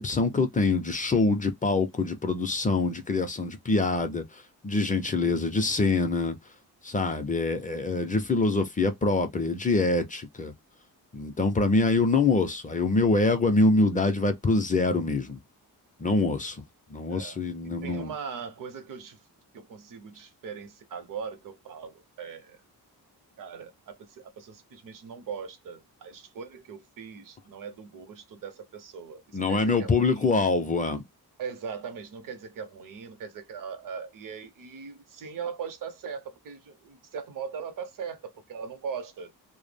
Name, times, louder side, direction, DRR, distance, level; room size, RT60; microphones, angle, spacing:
voice 1, 0.0-4.2 4.6-6.4 6.8-10.5 11.1-15.4 16.0-16.6 16.9-18.1 29.3-31.0, left 3 dB, 20° left, 0.4 m, -25 dB
voice 2, 17.1-19.2 19.5-22.6 23.4-30.2 31.4-39.3, right 6 dB, 55° right, 0.6 m, -40 dB
2.1 x 2.0 x 3.3 m
wide cardioid pair, 155°, 38 cm